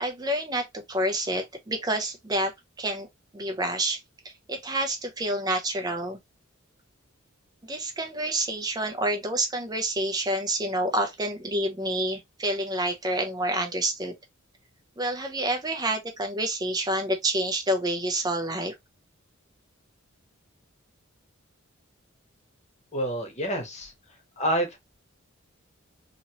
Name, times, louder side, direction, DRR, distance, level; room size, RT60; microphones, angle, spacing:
voice 1, 0.0-3.1 3.3-6.2 7.7-14.1 15.0-18.7, right 1 dB, 20° right, 0.4 m, -28 dB
voice 2, 22.9-24.8, right 1 dB, 35° left, 0.9 m, -29 dB
2.9 x 2.8 x 2.8 m
head